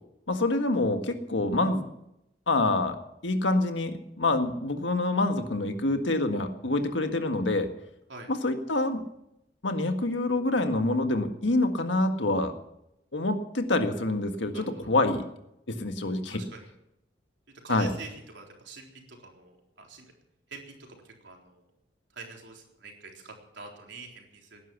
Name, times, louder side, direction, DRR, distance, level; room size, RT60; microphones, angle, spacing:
voice 1, 0.3-1.8 2.5-3.0 3.2-7.7 8.3-9.0 9.6-12.5 13.1-15.3 15.7-16.4 17.7-17.9, left 2 dB, 90° left, 6 dB, 1.7 m, -26 dB
voice 2, 14.5-14.9 16.3-16.7 17.6-20.1 20.5-21.7 22.1-24.6, right 3 dB, 75° right, 0 dB, 3.9 m, -46 dB
18.0 x 11.0 x 7.1 m, 0.83 s
head